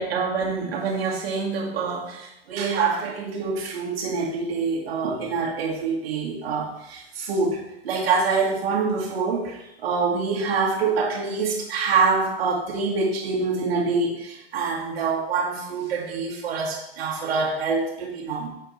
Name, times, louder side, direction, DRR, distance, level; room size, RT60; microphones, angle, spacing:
voice 1, 0.0-18.5, right 4 dB, 70° right, -3 dB, 2.4 m, -25 dB
7.5 x 4.4 x 4.3 m, 0.83 s
hypercardioid pair, 125°, 31 cm